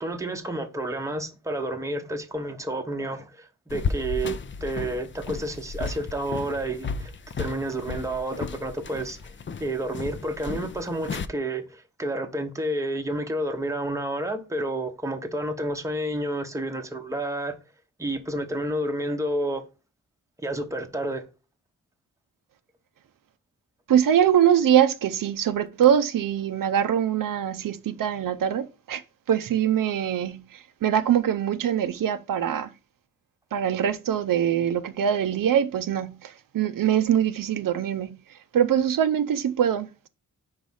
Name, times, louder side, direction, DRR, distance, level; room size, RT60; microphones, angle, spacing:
voice 1, 0.0-7.1 7.4-9.3 9.6-17.6 18.0-19.6 20.4-21.2, right 1 dB, 10° right, 0.7 m, -30 dB
sound 1, 3.7-11.3, left 5 dB, 35° left, 0.4 m, -34 dB
voice 2, 23.9-32.7 33.5-40.1, right 9 dB, 80° right, 0.6 m, -23 dB
5.2 x 4.7 x 5.4 m
wide cardioid pair, 165°, 33 cm